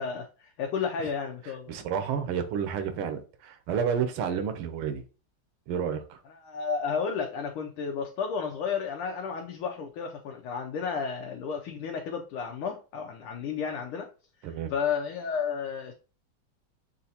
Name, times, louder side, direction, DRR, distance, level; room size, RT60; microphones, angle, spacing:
voice 1, 0.0-1.7 6.4-14.1 14.7-15.9, left 6 dB, 85° left, 1.5 m, -32 dB
voice 2, 1.7-5.0 5.7-6.2 14.4-14.7, right 7 dB, 90° right, 1.6 m, -30 dB
6.6 x 2.5 x 2.7 m
omnidirectional pair, 2.3 m